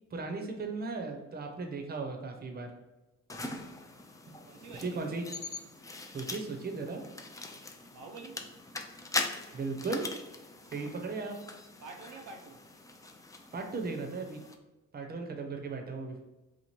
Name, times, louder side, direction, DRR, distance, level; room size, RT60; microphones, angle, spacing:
voice 1, 0.1-2.7 4.8-5.2 6.1-7.0 9.5-10.1 10.7-11.4 13.5-14.4 14.9-16.2, right 3 dB, 30° right, 3 dB, 0.7 m, -36 dB
sound 1, 3.3-14.5, left 2 dB, 10° left, 0.3 m, -41 dB
voice 2, 4.4-5.4 7.9-8.5 11.8-12.6, right 4 dB, 80° right, 3 dB, 0.6 m, -48 dB
2.9 x 2.4 x 4.3 m, 1.1 s
cardioid pair, 90°, 30 cm